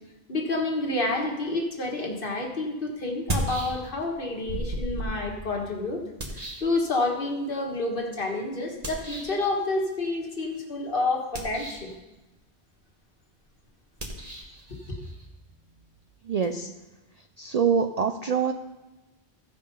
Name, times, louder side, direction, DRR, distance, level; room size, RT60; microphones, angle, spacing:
voice 1, 0.3-6.0 6.3-11.9 14.7-15.0, left 2 dB, 55° left, 1 dB, 1.5 m, -29 dB
sound 1, 2.1-2.2 3.1-4.1 4.5-7.3 8.8-9.5 11.2-12.0 13.9-16.5, right 1 dB, 35° right, 1.4 m, -36 dB
voice 2, 16.3-16.7 17.4-18.5, right 6 dB, 55° right, 7 dB, 0.4 m, -25 dB
15.0 x 5.2 x 5.4 m, 1.1 s
omnidirectional pair, 1.1 m